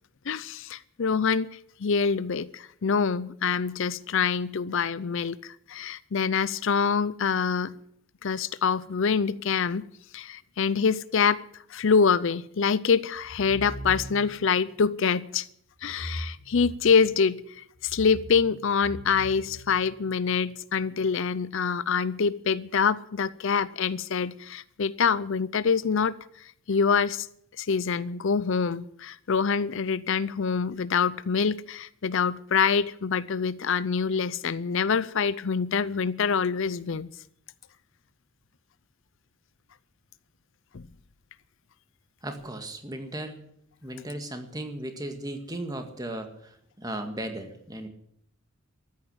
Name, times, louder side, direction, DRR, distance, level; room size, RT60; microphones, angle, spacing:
voice 1, 0.3-7.7 8.2-9.9 10.1-11.4 11.7-15.5 15.8-27.3 27.6-37.1 40.7-40.8, left 6 dB, 60° left, 0.5 m, -25 dB
sound 1, 13.2-14.4 15.8-17.2 17.7-20.3, equal, 85° left, 4.0 m, -41 dB
voice 2, 42.2-43.4 43.8-46.5 46.8-47.9, right 1 dB, 20° right, 1.9 m, -36 dB
14.0 x 9.6 x 8.9 m
head